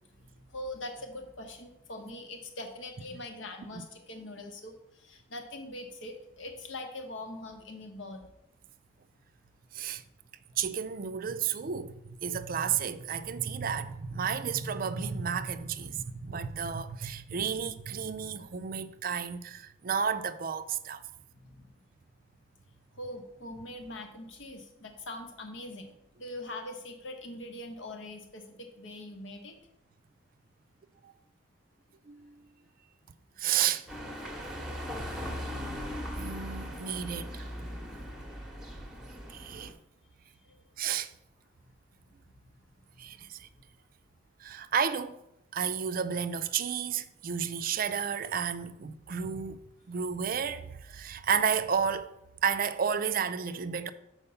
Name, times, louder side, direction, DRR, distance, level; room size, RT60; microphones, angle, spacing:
voice 1, 0.2-8.3 15.9-16.2 21.4-21.7 23.0-25.9 26.2-29.5 40.4-40.6 42.2-42.3 43.1-43.3, left 1 dB, 75° left, 1.2 m, -42 dB
voice 2, 10.6-11.9 12.2-21.0 31.0-31.1 32.1-32.4 33.4-33.9 36.2-37.7 39.3-39.7 40.8-41.1 43.0-43.5 44.4-45.2 45.5-49.6 49.9-52.1 52.4-53.9, right 7 dB, 45° right, 0.4 m, -32 dB
sound 1, 33.9-39.7, equal, 5° right, 0.9 m, -39 dB
6.7 x 4.6 x 5.5 m
head